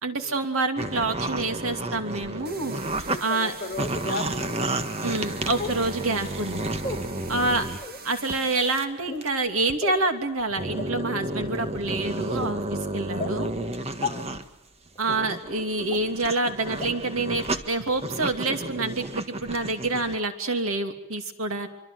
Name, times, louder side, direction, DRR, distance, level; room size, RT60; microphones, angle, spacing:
voice 1, 0.0-2.7 3.2-3.5 5.0-6.7 7.3-7.7 8.0-13.5 15.0-21.7, right 2 dB, 90° right, 6 dB, 2.9 m, -27 dB
sound 1, 0.8-3.2 3.5-7.8 8.3-8.8 9.2-9.3 9.7-9.8 10.4-14.5 14.9-20.2, right 2 dB, 30° right, 1.6 m, -32 dB
sound 2, 2.5-8.9, right 4 dB, 45° right, 2.1 m, -44 dB
voice 2, 3.1-5.3 14.0-14.4, left 2 dB, 45° left, 5 dB, 3.6 m, -36 dB
sound 3, 3.1-3.2 4.1-4.2 5.6-5.8 6.8-7.0 7.8-8.0 8.9-9.2 9.8-10.0 10.8-10.9 11.5-11.7 12.4-12.5 13.2-13.3 14.0-14.1 14.9-15.0 15.9-16.0 16.8-16.9 17.4-17.5, left 3 dB, 25° left, 2.4 m, -33 dB
25.5 x 25.0 x 7.8 m, 0.81 s
head